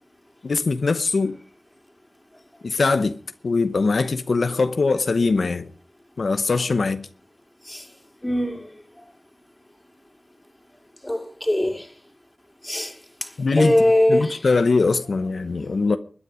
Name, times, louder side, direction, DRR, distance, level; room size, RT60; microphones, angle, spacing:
voice 1, 0.4-1.4 2.6-3.2 3.4-5.7 6.2-7.1 13.4-13.7 14.1-16.0, left 4 dB, 85° left, 0.9 m, -21 dB
voice 2, 8.2-8.7 11.0-11.9 12.6-12.9 13.2-14.4, left 1 dB, 15° left, 3.3 m, -21 dB
21.0 x 9.8 x 5.0 m
wide cardioid pair, 55°, 0 cm